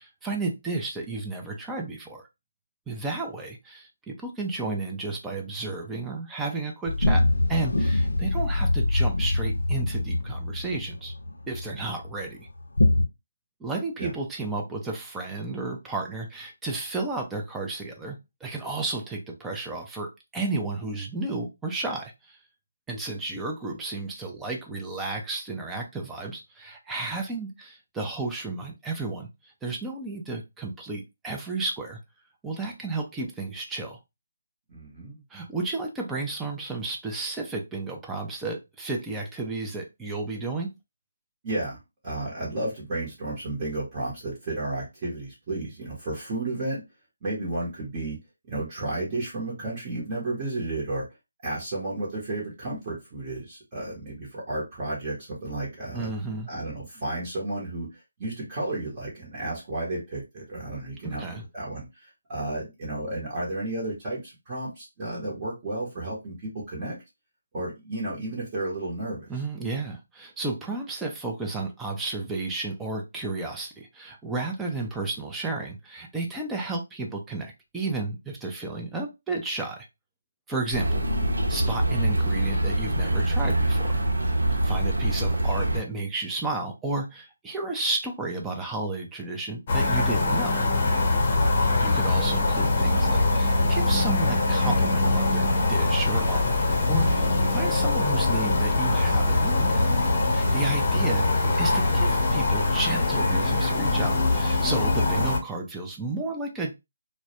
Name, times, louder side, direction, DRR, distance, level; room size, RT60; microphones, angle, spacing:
voice 1, 0.0-2.2 2.9-11.1 11.5-12.5 13.6-22.4 22.9-29.3 29.6-32.0 32.4-34.0 35.3-40.7 55.9-56.5 61.0-61.4 69.3-79.9 80.5-81.0 81.5-84.0 84.5-90.6 91.8-99.9 100.3-101.3 101.6-106.8, right 3 dB, 5° right, 1 dB, 0.4 m, -32 dB
sound 1, 6.9-12.2 12.6-13.0, left 2 dB, 85° left, 0.5 m, -24 dB
voice 2, 34.7-35.2 41.4-41.8 42.0-46.8 47.2-48.2 48.5-51.1 51.4-56.1 56.5-67.0 67.5-69.3, right 2 dB, 25° right, -6 dB, 0.8 m, -32 dB
sound 2, 80.7-85.8, right 1 dB, 80° right, 0.7 m, -24 dB
sound 3, 89.7-105.4, left 2 dB, 30° left, 0.7 m, -23 dB
2.2 x 2.0 x 2.8 m, 0.23 s
figure-of-eight pair, 165°, 0 cm